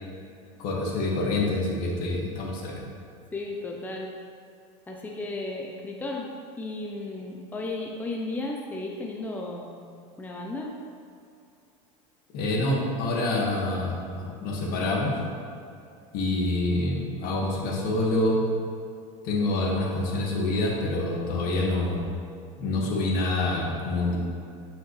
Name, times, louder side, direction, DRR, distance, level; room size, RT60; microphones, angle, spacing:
voice 1, 0.6-2.9 12.3-15.2 16.1-18.4 19.2-22.0 22.6-24.2, left 2 dB, 60° left, -2 dB, 2.0 m, -26 dB
voice 2, 3.3-4.1 4.9-6.3 6.6-9.9 10.2-10.8, left 2 dB, 10° left, -1 dB, 0.8 m, -34 dB
11.0 x 5.7 x 3.4 m, 2.5 s
supercardioid pair, 115°, 17 cm